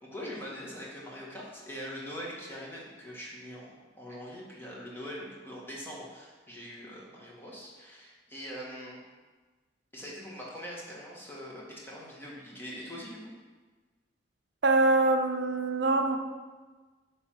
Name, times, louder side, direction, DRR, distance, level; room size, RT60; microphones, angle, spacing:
voice 1, 0.0-9.0 9.9-13.2, equal, 15° left, -4 dB, 1.8 m, -42 dB
voice 2, 14.6-16.2, right 2 dB, 70° right, 5 dB, 0.6 m, -24 dB
9.5 x 3.6 x 6.0 m, 1.3 s
head